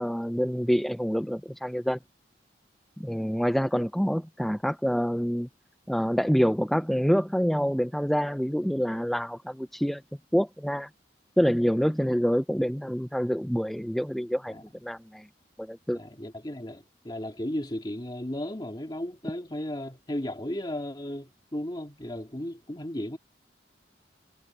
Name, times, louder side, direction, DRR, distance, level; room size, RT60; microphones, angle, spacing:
voice 1, 0.0-2.0 3.0-5.5 5.9-10.0 10.3-10.9 11.4-15.3 15.6-16.0, equal, ahead, 0.4 m, -26 dB
voice 2, 15.9-23.2, left 1 dB, 25° left, 2.0 m, -35 dB
head